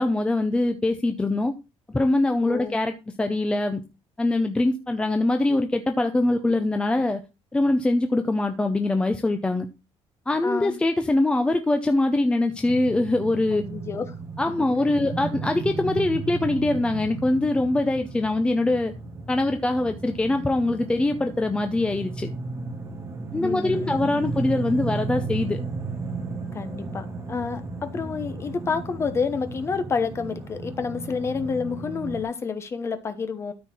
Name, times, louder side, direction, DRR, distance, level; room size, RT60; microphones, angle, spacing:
voice 1, 0.0-1.5 1.9-3.8 4.2-7.2 7.5-9.7 10.3-13.6 14.4-18.9 19.3-22.3 23.3-25.6, left 2 dB, 10° left, 0.6 m, -23 dB
voice 2, 2.4-2.8 10.4-10.8 13.5-14.1 14.6-14.7 23.4-24.2 26.5-33.5, left 5 dB, 25° left, 1.0 m, -29 dB
sound 1, 12.6-32.2, right 3 dB, 25° right, 1.8 m, -34 dB
13.0 x 4.4 x 4.4 m
cardioid pair, 170°, 10 cm